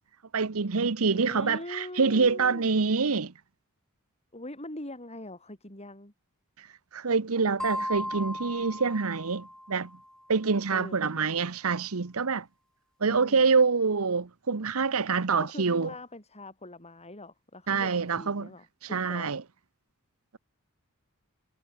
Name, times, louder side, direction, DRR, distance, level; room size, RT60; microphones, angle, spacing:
voice 1, 0.3-3.3 6.6-6.7 6.9-9.9 10.3-12.5 13.0-15.9 17.7-18.5 18.9-19.4, right 4 dB, 70° right, 0.9 m, -26 dB
voice 2, 1.1-2.7 4.3-6.1 10.7-11.3 13.0-13.4 15.4-19.3, left 1 dB, 30° left, 8.0 m, -43 dB
sound 1, 7.6-10.1, equal, 5° left, 2.8 m, -36 dB
head